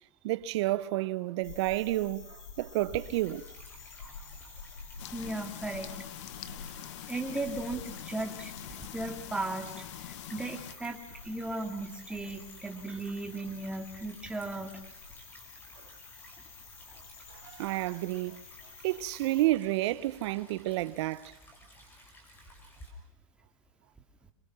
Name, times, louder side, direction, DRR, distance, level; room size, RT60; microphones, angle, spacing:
voice 1, 0.2-3.4 17.3-18.4 18.8-21.3, right 17 dB, 50° right, 0.9 m, -30 dB
sound 1, 1.4-19.5, left 5 dB, 80° left, 4.5 m, -49 dB
Stream / Trickle dribble, 3.0-22.9, equal, 10° left, 5.9 m, -55 dB
sound 2, 5.0-10.7, left 13 dB, 55° left, 1.1 m, -45 dB
voice 2, 5.0-5.9 7.1-9.7 10.0-14.8 16.9-17.0, right 2 dB, 5° right, 2.4 m, -36 dB
27.0 x 22.0 x 6.0 m
supercardioid pair, 145°, 18 cm